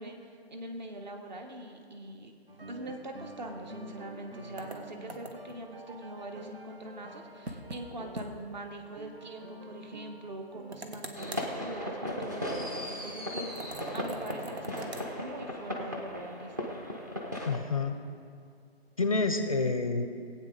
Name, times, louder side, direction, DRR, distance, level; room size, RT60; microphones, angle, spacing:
voice 1, 0.0-2.3 2.7-16.7, right 1 dB, 45° right, 4 dB, 1.3 m, -43 dB
sound 1, 2.5-13.8, right 1 dB, 65° right, 1.1 m, -50 dB
sound 2, 4.6-5.6 7.5-7.8 8.2-8.3 8.6-8.7 10.7-11.5 13.6-15.1, right 2 dB, 90° right, 1.5 m, -42 dB
sound 3, 11.1-17.6, equal, 20° right, 0.6 m, -37 dB
voice 2, 17.4-17.9 19.0-20.1, left 3 dB, 35° left, 7 dB, 0.5 m, -28 dB
18.5 x 8.6 x 3.9 m, 2.3 s
hypercardioid pair, 165°, 32 cm